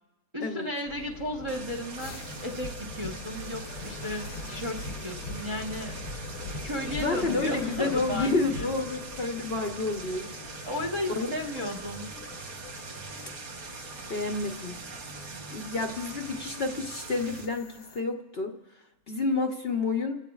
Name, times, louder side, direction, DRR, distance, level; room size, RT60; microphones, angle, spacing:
voice 1, 0.3-6.0 6.6-8.7 10.7-12.2, left 1 dB, 20° right, -1 dB, 1.0 m, -34 dB
sound 1, 0.9-18.0, left 3 dB, 85° left, 1.5 m, -43 dB
sound 2, 1.5-17.5, right 3 dB, 70° right, 1.5 m, -42 dB
voice 2, 7.0-10.3 11.1-11.3 14.1-14.8 15.5-18.6 19.1-20.2, left 3 dB, 50° left, 3 dB, 0.9 m, -29 dB
29.0 x 16.5 x 2.4 m, 1.1 s
omnidirectional pair, 1.6 m